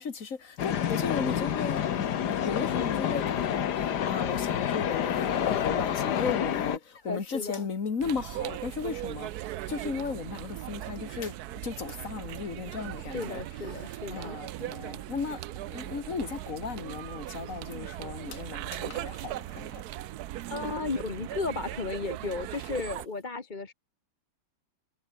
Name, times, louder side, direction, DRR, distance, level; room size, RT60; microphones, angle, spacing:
voice 1, 0.0-3.7 4.0-6.8 7.0-9.3 9.7-11.3 11.6-13.4 13.7-13.8 14.1-15.4 15.7-19.7, left 5 dB, 50° left, 2.3 m, -35 dB
sound 1, 0.6-6.8, left 9 dB, 70° left, 1.7 m, -28 dB
voice 2, 7.0-7.7 13.0-14.3 20.5-23.7, left 3 dB, 30° left, 1.5 m, -34 dB
sound 2, 8.0-23.1, right 14 dB, 70° right, 1.1 m, -39 dB
omnidirectional pair, 1.8 m